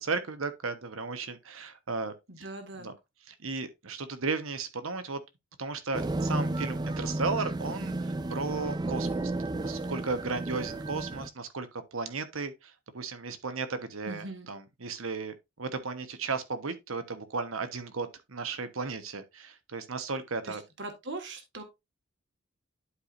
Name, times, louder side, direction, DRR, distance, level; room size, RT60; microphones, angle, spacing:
voice 1, 0.0-2.4 2.8-2.9 3.3-5.2 5.6-9.3 9.6-20.6, right 4 dB, 75° right, 1.1 m, -35 dB
voice 2, 2.3-2.9 14.0-14.5 20.4-21.6, right 2 dB, 55° right, 1.6 m, -41 dB
sound 1, 5.9-11.3, right 2 dB, 20° right, 0.4 m, -32 dB
11.5 x 4.8 x 2.5 m
head